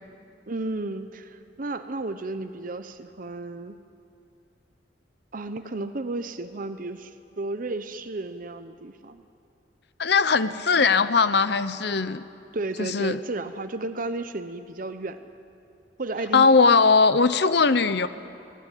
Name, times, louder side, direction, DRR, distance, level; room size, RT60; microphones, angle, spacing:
voice 1, 0.5-3.8 5.3-9.2 12.5-15.3 16.0-16.5, right 2 dB, 50° right, 9 dB, 0.8 m, -33 dB
voice 2, 10.0-12.2 12.8-13.2 16.3-18.1, left 4 dB, 65° left, 13 dB, 0.9 m, -20 dB
26.0 x 18.5 x 9.2 m, 2.6 s
head